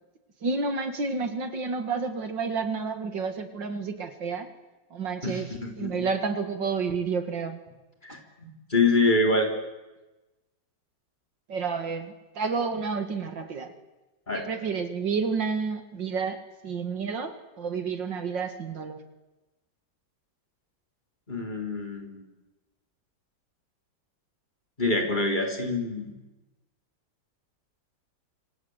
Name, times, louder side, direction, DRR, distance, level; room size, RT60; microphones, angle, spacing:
voice 1, 0.4-4.5 4.9-5.5 5.8-7.6 11.5-13.7 14.3-19.0, right 5 dB, 80° right, 8 dB, 2.9 m, -30 dB
voice 2, 5.2-6.1 8.0-9.5 14.3-14.5 21.3-22.2 24.8-26.1, left 2 dB, 25° left, 2 dB, 4.1 m, -26 dB
26.5 x 26.5 x 8.1 m, 1.1 s
omnidirectional pair, 1.9 m